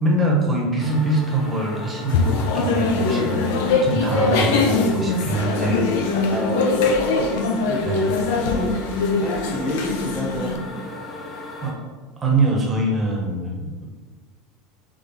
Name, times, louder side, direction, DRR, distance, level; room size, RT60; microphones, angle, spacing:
voice 1, 0.0-6.4 7.8-8.4 11.6-11.7 12.2-13.9, right 2 dB, 15° right, -1 dB, 0.9 m, -24 dB
sound 1, 0.8-11.7, left 2 dB, 30° left, 0.6 m, -36 dB
sound 2, 2.1-10.6, left 3 dB, 75° left, 0.6 m, -22 dB
voice 2, 4.0-5.3 6.3-7.1 7.6-7.9 8.5-8.8 9.2-11.1, equal, 5° left, -4 dB, 1.2 m, -29 dB
3.9 x 3.2 x 4.0 m, 1.4 s
supercardioid pair, 165°, 0 cm